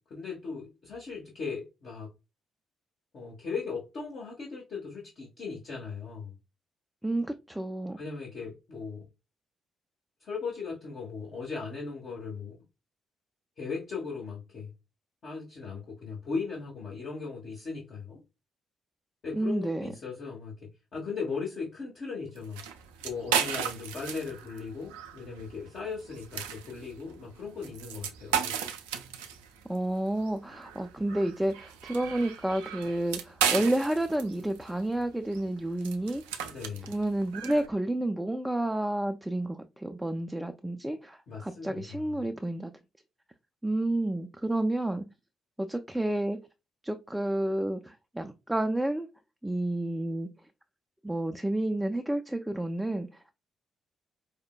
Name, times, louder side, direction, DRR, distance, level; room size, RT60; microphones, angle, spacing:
voice 1, 0.0-2.1 3.1-6.3 8.0-9.0 10.2-12.5 13.6-14.7 15.2-18.2 19.2-20.5 20.9-22.6 23.0-28.6 36.5-36.9 41.3-42.0, left 5 dB, 50° left, 1.1 m, -38 dB
voice 2, 7.0-8.0 19.3-19.9 29.6-36.2 36.9-42.7 43.6-45.0 45.6-46.4 46.8-49.1 49.4-50.3 51.0-53.2, right 1 dB, 5° right, 0.4 m, -30 dB
sound 1, 22.4-37.7, right 8 dB, 75° right, 0.3 m, -35 dB
5.0 x 2.1 x 2.2 m
figure-of-eight pair, 40°, 0 cm